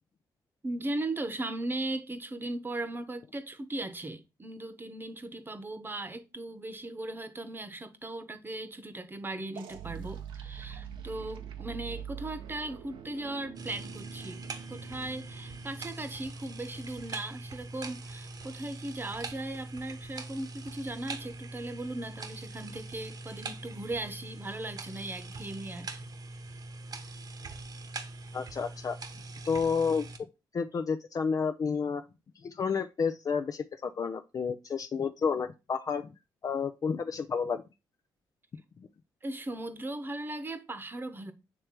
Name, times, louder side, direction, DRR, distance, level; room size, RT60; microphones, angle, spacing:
voice 1, 0.6-14.4 14.7-25.9 39.2-41.3, right 2 dB, 25° right, 1.0 m, -38 dB
sound 1, 9.5-16.2, right 9 dB, 85° right, 1.0 m, -44 dB
sound 2, 13.6-30.2, right 3 dB, 50° right, 1.1 m, -43 dB
voice 2, 28.3-29.0 29.4-30.1 30.5-32.0 32.4-36.1 36.4-37.6, left 5 dB, 45° left, 0.5 m, -30 dB
7.3 x 3.3 x 4.6 m
cardioid pair, 80°, 8 cm